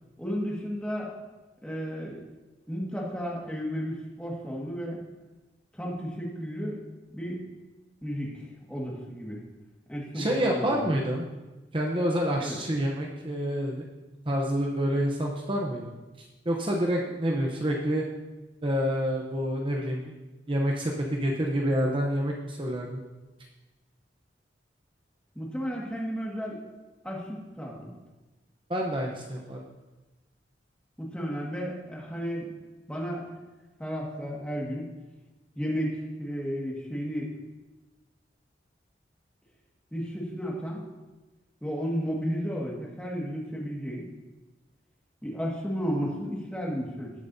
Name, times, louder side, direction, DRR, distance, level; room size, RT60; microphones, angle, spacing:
voice 1, 0.2-1.1 1.6-2.2 2.7-5.0 5.7-6.8 7.1-7.4 8.0-9.4 9.9-11.0 12.4-12.6 25.3-26.6 27.0-27.9 31.0-32.5 32.9-33.2 33.8-34.8 35.5-37.3 39.9-40.8 41.6-44.1 45.2-47.1, equal, 5° left, -3 dB, 1.8 m, -33 dB
voice 2, 10.1-11.2 11.7-13.8 14.3-18.0 18.6-20.1 20.5-23.0 28.7-29.6, equal, 30° right, 0 dB, 0.8 m, -28 dB
17.0 x 7.2 x 2.7 m, 1.1 s
head